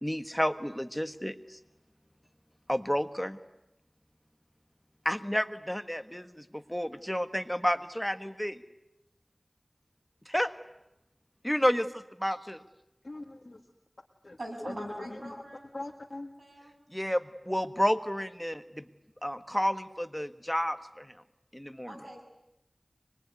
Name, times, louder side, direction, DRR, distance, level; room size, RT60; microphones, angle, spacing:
voice 1, 0.0-1.6 2.7-3.4 5.0-8.6 10.2-10.5 11.4-12.6 16.9-18.8 19.2-21.2 21.5-21.9, equal, 10° left, 9 dB, 1.4 m, -31 dB
voice 2, 13.0-13.6 14.2-14.4 14.6-15.4 15.7-16.3, left 2 dB, 55° left, 1 dB, 2.0 m, -41 dB
voice 3, 14.4-15.6 16.4-16.8 21.9-22.2, right 1 dB, 80° right, 1 dB, 7.2 m, -42 dB
25.5 x 21.5 x 9.5 m, 0.91 s
wide cardioid pair, 45°, 0 cm